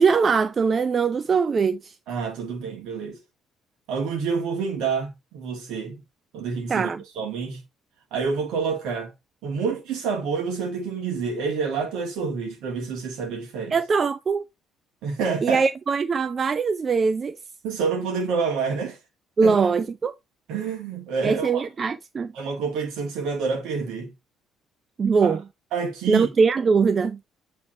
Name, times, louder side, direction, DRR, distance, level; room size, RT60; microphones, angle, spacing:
voice 1, 0.0-2.0 6.7-7.0 13.7-14.4 15.4-17.4 19.4-20.1 21.2-22.3 25.0-25.4 26.1-27.2, right 5 dB, 35° right, 0.5 m, -21 dB
voice 2, 2.1-3.2 3.9-6.0 6.3-6.9 7.1-7.6 8.1-9.1 9.4-13.7 15.0-15.6 17.6-19.0 19.4-19.7 20.5-21.7 22.3-24.1 25.2-25.4 25.7-26.3, right 5 dB, 60° right, 1.6 m, -28 dB
8.5 x 3.5 x 4.4 m
figure-of-eight pair, 50°, 0 cm